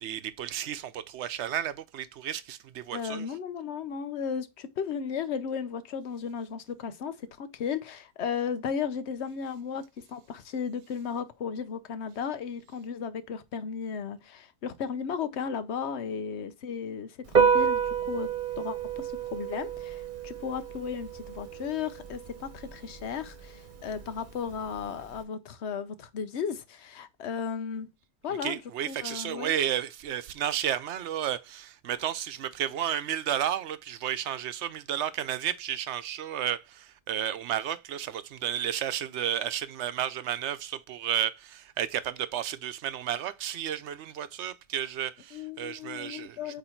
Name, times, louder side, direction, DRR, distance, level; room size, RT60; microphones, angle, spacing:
voice 1, 0.0-3.3 28.4-46.5, right 10 dB, 80° right, 0.9 m, -32 dB
voice 2, 2.9-18.3 18.6-27.9 28.2-28.6 28.9-29.5 45.3-46.6, left 6 dB, 75° left, 1.0 m, -35 dB
Piano, 17.2-25.2, right 6 dB, 50° right, 1.0 m, -30 dB
8.1 x 3.1 x 4.4 m
omnidirectional pair, 1.2 m